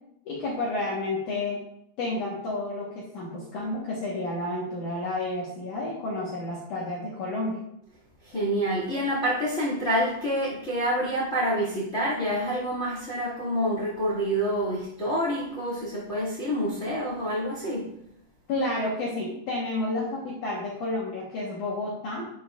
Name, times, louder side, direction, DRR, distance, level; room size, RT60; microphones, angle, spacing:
voice 1, 0.3-1.6 2.0-7.6 18.5-22.2, left 2 dB, 75° left, -6 dB, 1.8 m, -30 dB
voice 2, 8.2-17.9, equal, 35° left, -5 dB, 1.1 m, -27 dB
11.0 x 7.3 x 2.5 m, 0.76 s
omnidirectional pair, 5.9 m